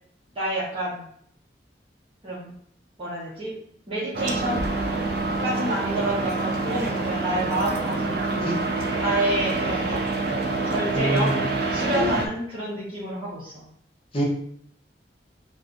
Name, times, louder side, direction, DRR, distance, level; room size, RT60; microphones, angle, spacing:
voice 1, 0.3-1.0 2.2-2.5 3.0-3.5 3.9-4.6 5.4-8.4 9.0-10.0 10.6-11.3 11.7-13.7, right 1 dB, 30° right, -10 dB, 0.9 m, -28 dB
sound 1, 4.1-12.3, right 3 dB, 60° right, 0.4 m, -26 dB
voice 2, 8.4-8.9 10.9-11.5 11.9-12.1 14.1-14.2, equal, 30° left, -3 dB, 0.8 m, -26 dB
2.6 x 2.4 x 3.5 m, 0.65 s
head